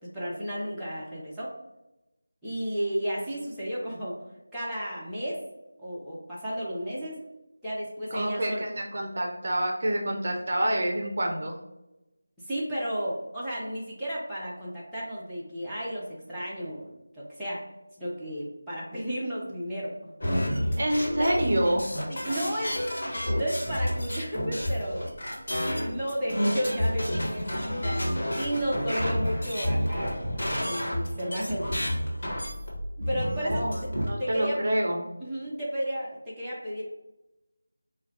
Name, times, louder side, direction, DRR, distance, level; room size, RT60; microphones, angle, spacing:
voice 1, 0.0-1.5 2.4-4.2 4.5-5.4 5.8-7.2 7.6-8.6 12.5-17.6 18.0-19.9 20.4-20.8 21.2-21.3 22.1-22.8 23.0-25.1 25.7-27.5 27.8-30.2 30.5-31.7 33.1-33.9 34.2-34.6 35.2-36.8, equal, ahead, -14 dB, 0.7 m, -33 dB
voice 2, 8.1-11.6 20.8-21.9 33.0-35.1, right 1 dB, 45° right, 1 dB, 0.5 m, -28 dB
sound 1, 20.2-34.1, equal, 45° left, 1.3 m, -30 dB
4.8 x 2.2 x 2.4 m, 0.95 s
figure-of-eight pair, 165°, 0 cm